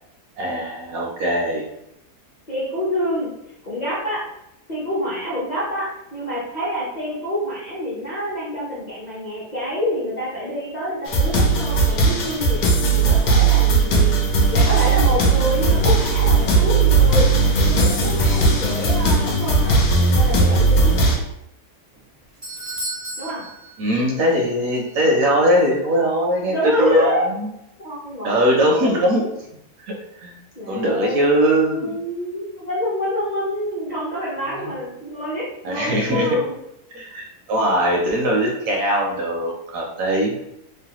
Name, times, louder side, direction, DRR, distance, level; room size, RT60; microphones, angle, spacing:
voice 1, 0.4-1.6 23.8-27.5 28.2-29.3 29.8-29.9 30.2-30.3 30.7-32.0 35.6-36.4 36.9-40.3, equal, 70° right, -1 dB, 0.9 m, -20 dB
voice 2, 2.5-3.3 3.6-4.2 4.7-12.6 12.9-14.2 14.5-17.3 17.6-19.7 20.0-21.2 23.2-23.4 26.5-27.3 27.8-28.9 30.5-36.6, equal, 45° left, -9 dB, 0.6 m, -27 dB
sound 1, 11.1-21.2, right 3 dB, 85° left, 1.2 m, -17 dB
Doorbell, 21.9-24.5 24.7-24.8 25.6-25.7, right 1 dB, 55° right, 0.3 m, -34 dB
3.1 x 2.1 x 2.8 m, 0.82 s
omnidirectional pair, 1.7 m